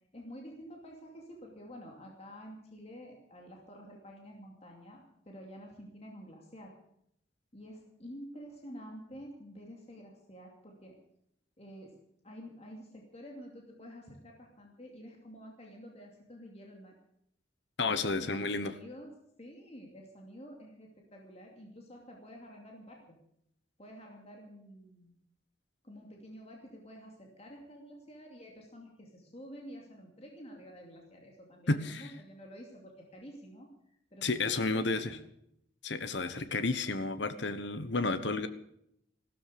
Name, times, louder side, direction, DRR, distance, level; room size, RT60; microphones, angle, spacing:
voice 1, 0.1-6.7 7.5-10.9 11.6-11.9 12.2-16.9 17.8-19.1 19.4-23.2 23.8-25.2 25.8-35.2, equal, 35° left, 0 dB, 2.6 m, -49 dB
voice 2, 17.8-18.7 31.7-32.1 34.2-35.2 35.8-38.5, left 3 dB, 65° left, 11 dB, 1.2 m, -31 dB
15.0 x 13.0 x 6.8 m, 0.74 s
head